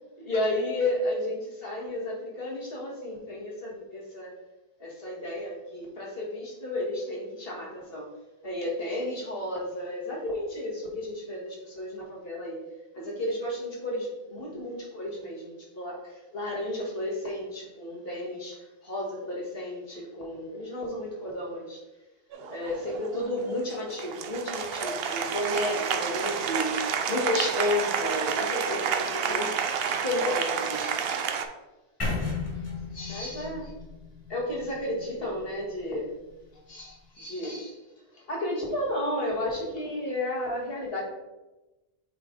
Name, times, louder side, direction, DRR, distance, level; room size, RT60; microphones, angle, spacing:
voice 1, 0.2-4.3 4.8-8.1 8.4-12.6 12.9-18.6 18.8-21.8 22.5-29.5 30.0-31.1 32.9-33.7 34.3-36.1 36.7-37.8 38.1-41.0, left 1 dB, 60° left, -3 dB, 1.7 m, -32 dB
Applause, 22.3-31.5, right 7 dB, 65° right, 0.8 m, -30 dB
sound 1, 32.0-36.0, left 3 dB, 30° left, 1.6 m, -35 dB
7.7 x 3.3 x 3.7 m, 1.0 s
omnidirectional pair, 1.1 m